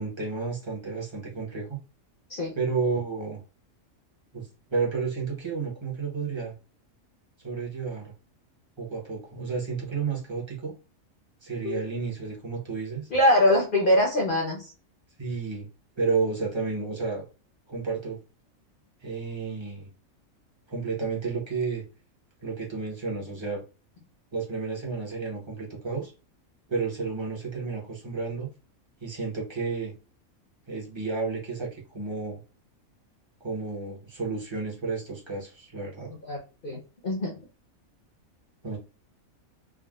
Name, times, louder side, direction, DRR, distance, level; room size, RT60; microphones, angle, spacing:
voice 1, 0.0-1.8 2.5-3.4 4.3-6.5 7.4-8.1 8.8-10.7 11.4-13.1 15.2-15.7 16.0-17.2 17.7-18.2 19.0-19.9 20.7-21.8 22.4-23.6 24.3-26.1 26.7-28.5 29.0-29.9 30.7-32.4 33.4-36.1 38.6-38.8, right 4 dB, 25° right, -2 dB, 0.8 m, -31 dB
voice 2, 13.1-14.7 36.3-36.4 36.6-37.3, left 1 dB, 50° left, -1 dB, 0.7 m, -23 dB
3.6 x 2.3 x 2.3 m, 0.33 s
omnidirectional pair, 1.4 m